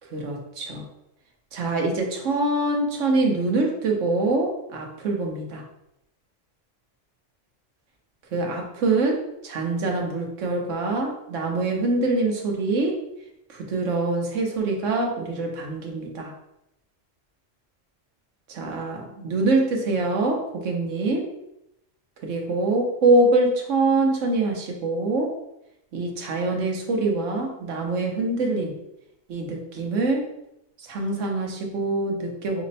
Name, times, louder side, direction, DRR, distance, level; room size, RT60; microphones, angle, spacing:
voice 1, 0.1-0.9 1.5-5.6 8.3-13.0 13.5-16.3 18.5-21.3 22.2-25.3 25.9-28.7 29.3-30.3 30.8-32.6, right 2 dB, 75° right, 1 dB, 1.2 m, -24 dB
5.0 x 2.1 x 3.9 m, 0.83 s
omnidirectional pair, 1.3 m